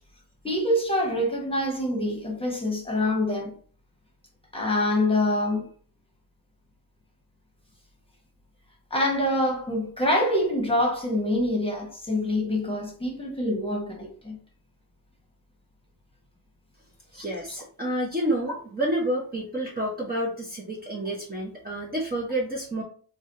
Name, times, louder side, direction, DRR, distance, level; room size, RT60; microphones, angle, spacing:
voice 1, 0.4-3.5 4.5-5.7 8.9-14.4 17.1-17.2, left 1 dB, 10° left, 1.2 m, -25 dB
voice 2, 17.1-22.8, right 1 dB, 20° right, 0.8 m, -29 dB
3.1 x 2.3 x 2.7 m
supercardioid pair, 60°, 47 cm